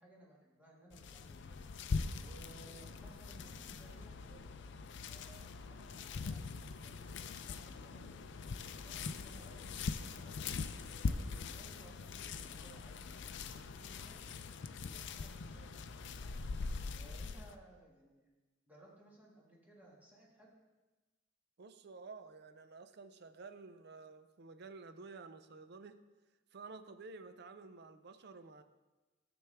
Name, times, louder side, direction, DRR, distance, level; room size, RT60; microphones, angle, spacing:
voice 1, 0.0-4.5 5.0-10.5 10.8-13.1 13.5-14.2 14.5-16.4 16.8-18.3 18.7-20.5, right 1 dB, 10° right, -4 dB, 1.9 m, -61 dB
sound 1, 0.9-17.6, left 4 dB, 60° left, 0.4 m, -42 dB
voice 2, 21.6-26.0 26.5-28.6, right 4 dB, 55° right, 10 dB, 0.5 m, -52 dB
13.0 x 7.0 x 3.4 m, 1.2 s
head